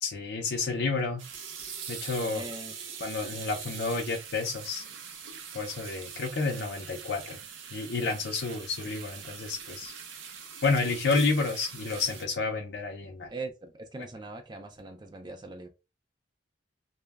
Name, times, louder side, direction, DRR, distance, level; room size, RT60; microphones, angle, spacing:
voice 1, 0.0-1.2 1.9-2.4 3.0-4.8 5.5-7.4 7.7-9.9 10.6-13.3, left 4 dB, 65° left, 0.5 m, -30 dB
sound 1, 1.0-12.2, right 7 dB, 80° right, 0.6 m, -43 dB
voice 2, 2.2-2.7 13.3-15.7, right 2 dB, 25° right, 0.4 m, -41 dB
2.2 x 2.1 x 3.3 m
head